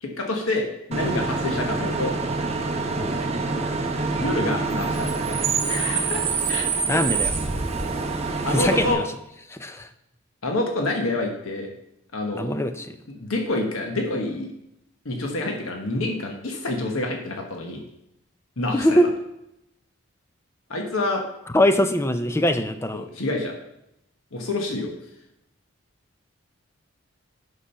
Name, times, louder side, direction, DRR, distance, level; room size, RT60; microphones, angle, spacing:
voice 1, 0.0-2.1 4.2-5.1 5.7-6.6 6.9-7.0 8.4-9.0 10.4-11.7 12.1-12.5 13.2-14.5 15.0-17.8 18.6-19.0 20.7-21.2 22.9-23.5 24.3-24.9, left 2 dB, 80° left, 2 dB, 1.3 m, -27 dB
Bus / Idling / Screech, 0.9-8.9, right 4 dB, 30° right, 0.9 m, -26 dB
voice 2, 6.9-7.3 8.5-9.1 9.5-9.9 12.3-13.0 18.7-19.1 21.5-23.1, left 1 dB, 10° left, 9 dB, 0.5 m, -22 dB
8.6 x 6.2 x 5.7 m, 0.83 s
head